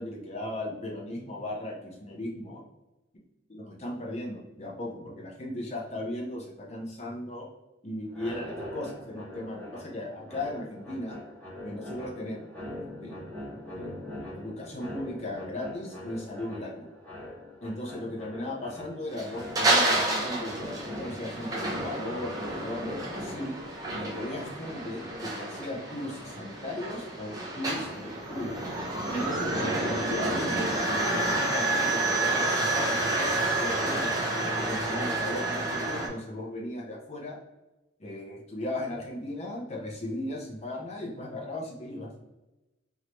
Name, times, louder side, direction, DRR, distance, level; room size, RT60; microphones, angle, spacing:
voice 1, 0.0-2.6 3.5-7.5 7.8-11.2 11.6-12.4 12.8-16.7 17.6-23.6 23.9-28.6 29.1-34.2 34.6-37.4 38.0-42.1, left 1 dB, 35° left, -1 dB, 0.8 m, -37 dB
sound 1, 8.1-26.0, left 1 dB, 10° left, 1.1 m, -42 dB
sound 2, 19.1-36.1, right 2 dB, 20° right, 0.7 m, -29 dB
3.8 x 3.1 x 3.0 m, 1.0 s
head